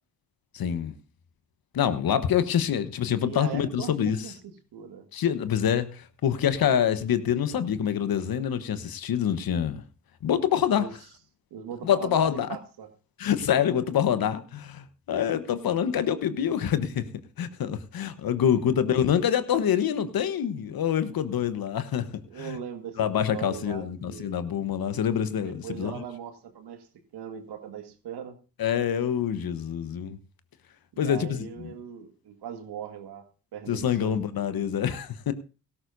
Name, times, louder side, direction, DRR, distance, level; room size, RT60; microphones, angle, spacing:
voice 1, 0.5-0.9 1.7-4.3 5.1-9.8 10.2-10.9 11.8-12.5 13.2-17.1 17.4-22.6 23.0-26.0 28.6-30.2 31.0-31.7 33.7-35.3, left 9 dB, 55° left, 12 dB, 1.2 m, -26 dB
voice 2, 3.1-4.3 4.7-5.1 10.5-10.9 11.5-12.9 18.4-18.8 22.3-24.6 25.3-26.9 27.1-28.4 30.9-33.2 33.5-34.3, right 8 dB, 65° right, 7 dB, 1.9 m, -40 dB
17.0 x 13.5 x 2.7 m, 0.34 s
hypercardioid pair, 45°, 42 cm